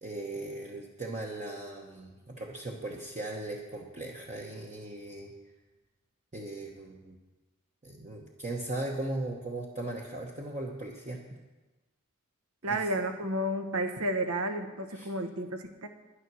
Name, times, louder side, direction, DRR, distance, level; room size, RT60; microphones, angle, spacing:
voice 1, 0.0-5.3 6.3-7.2 7.8-11.2 12.7-12.9 14.9-15.1, right 2 dB, 35° right, -1 dB, 1.0 m, -38 dB
voice 2, 12.6-15.9, right 1 dB, 80° right, 7 dB, 1.1 m, -31 dB
10.5 x 10.0 x 6.2 m, 1.2 s
head